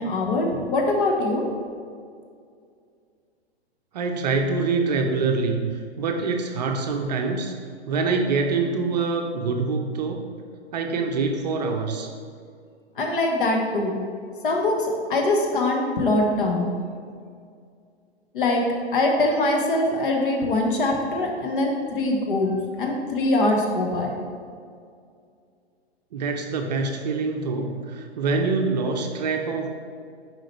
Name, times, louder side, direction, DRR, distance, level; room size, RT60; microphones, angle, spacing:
voice 1, 0.0-1.4 13.0-14.0 14.4-16.7 18.3-18.6 18.9-24.1, left 2 dB, 50° left, 1 dB, 1.2 m, -23 dB
voice 2, 3.9-7.6 7.9-10.2 10.7-12.1 26.1-29.7, right 4 dB, 40° right, 4 dB, 0.6 m, -25 dB
7.6 x 4.8 x 3.2 m, 2.2 s
figure-of-eight pair, 115°, 32 cm